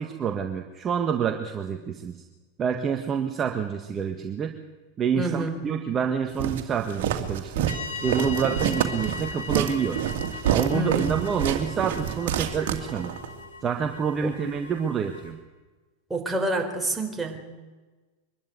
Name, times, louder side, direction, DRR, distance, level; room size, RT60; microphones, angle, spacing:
voice 1, 0.0-2.2 2.6-4.5 5.0-7.7 8.0-10.0 10.5-13.1 13.6-15.4, right 7 dB, 30° right, 5 dB, 1.6 m, -27 dB
voice 2, 5.2-5.8 10.7-11.2 16.1-17.4, right 2 dB, 10° right, 2 dB, 4.2 m, -28 dB
Walk footsteps, 6.4-13.3, right 10 dB, 65° right, 2.3 m, -28 dB
sound 1, 7.7-15.3, left 3 dB, 85° left, 6.4 m, -39 dB
23.5 x 12.5 x 9.5 m, 1.3 s
hypercardioid pair, 100°, 0 cm